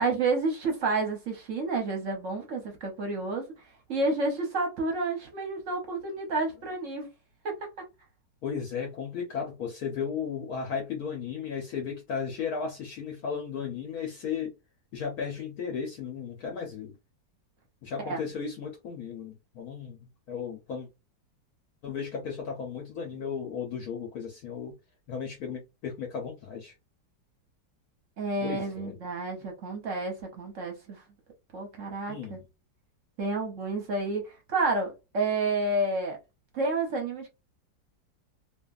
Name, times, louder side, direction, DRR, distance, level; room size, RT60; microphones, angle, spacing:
voice 1, 0.0-3.5 3.9-7.1 7.4-7.7 18.0-18.2 28.2-31.0 31.5-32.4 33.2-36.2 36.5-37.3, right 3 dB, 55° right, 0.9 m, -30 dB
voice 2, 8.4-14.5 14.9-16.9 17.8-20.0 20.3-20.9 21.8-24.7 25.1-26.7 28.4-28.9 32.1-32.4, left 6 dB, 65° left, 1.1 m, -35 dB
2.8 x 2.5 x 2.3 m
omnidirectional pair, 1.9 m